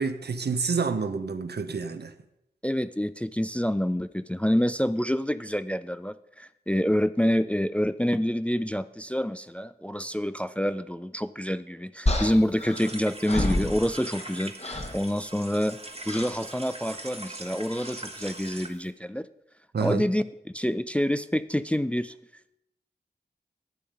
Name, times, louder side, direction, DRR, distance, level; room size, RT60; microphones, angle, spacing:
voice 1, 0.0-2.1 19.7-20.1, right 5 dB, 70° right, 10 dB, 0.9 m, -28 dB
voice 2, 2.6-15.8 16.1-19.3 19.8-22.1, equal, 5° left, 14 dB, 0.4 m, -27 dB
sound 1, 12.1-14.3 14.6-15.0 16.1-16.4 17.7-18.0, left 1 dB, 35° left, 1.4 m, -29 dB
sound 2, 12.7-18.7, right 2 dB, 35° right, 1.2 m, -41 dB
11.0 x 7.7 x 5.0 m, 0.82 s
cardioid pair, 50°, 18 cm